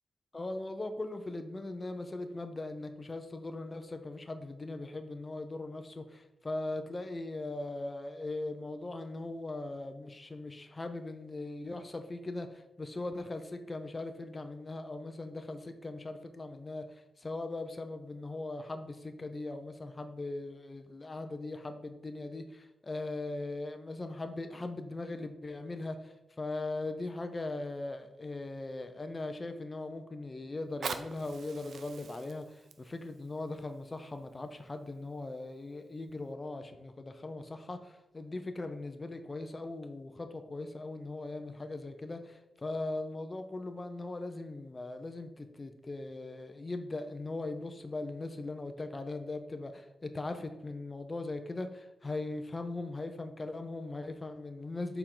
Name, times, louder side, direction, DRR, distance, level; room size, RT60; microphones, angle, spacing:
voice 1, 0.3-55.0, left 2 dB, 20° left, 7 dB, 0.4 m, -39 dB
Fire, 30.6-35.5 36.2-36.3, right 5 dB, 70° right, 0.4 m, -45 dB
6.7 x 4.5 x 3.7 m, 0.93 s
wide cardioid pair, 180°, 0 cm